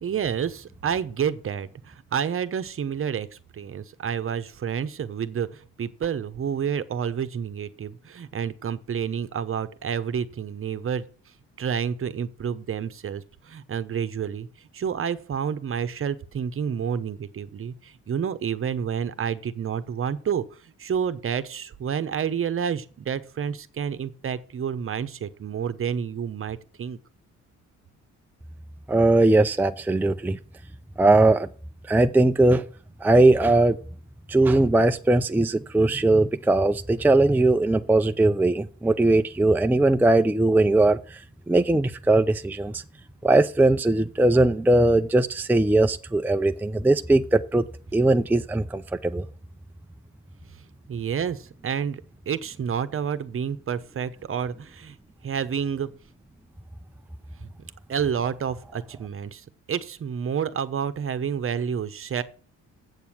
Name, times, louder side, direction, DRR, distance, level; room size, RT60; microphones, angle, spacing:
voice 1, 0.0-3.3 3.5-11.1 11.6-14.5 14.7-20.4 20.8-27.0 50.9-52.0 52.3-55.0 55.2-55.9 57.4-57.5 57.9-62.2, right 7 dB, 45° right, 1.0 m, -29 dB
voice 2, 28.9-30.4 31.0-31.5 31.9-32.6 33.0-33.8 34.3-41.2 41.5-42.8 43.2-47.7 47.9-49.3, right 2 dB, 5° right, 0.5 m, -20 dB
8.2 x 7.0 x 6.1 m
cardioid pair, 90°, 30 cm